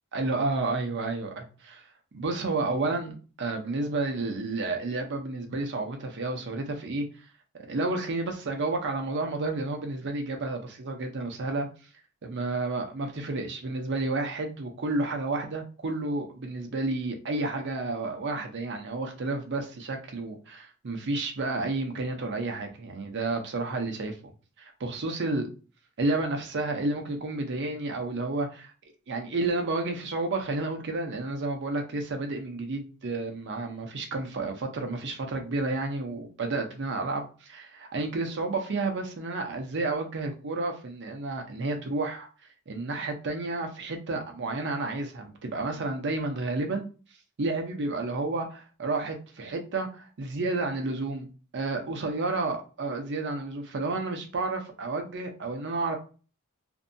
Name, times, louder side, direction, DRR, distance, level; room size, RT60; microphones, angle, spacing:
voice 1, 0.1-1.8 2.1-7.1 7.7-11.7 12.2-24.2 24.6-25.5 26.0-28.7 29.1-42.3 42.7-46.9 47.4-51.3 51.5-56.0, right 2 dB, 55° right, 0.6 m, -31 dB
2.7 x 2.2 x 2.6 m
head